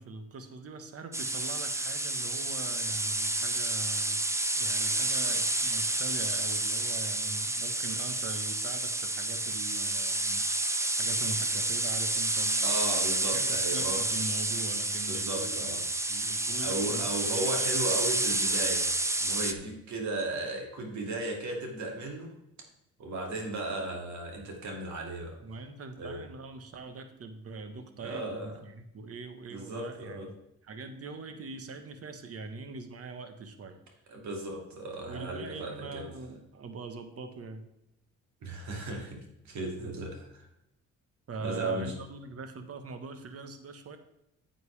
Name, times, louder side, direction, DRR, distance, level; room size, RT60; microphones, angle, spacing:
voice 1, 0.0-4.2 4.5-10.4 11.0-12.7 13.3-15.7 16.1-17.1 17.5-18.2 25.4-30.2 30.6-33.8 35.1-37.6 41.3-44.0, right 3 dB, 50° right, 8 dB, 1.3 m, -42 dB
sound 1, 1.1-19.5, right 2 dB, 10° right, 0.6 m, -30 dB
voice 2, 12.6-14.0 15.1-15.8 16.6-18.9 19.2-22.3 23.0-25.4 26.0-26.3 28.0-28.6 29.5-30.3 34.1-36.0 38.4-40.5 41.4-42.0, right 2 dB, 70° right, 1 dB, 2.5 m, -35 dB
9.6 x 7.9 x 3.4 m, 0.84 s
cardioid pair, 90°, 30 cm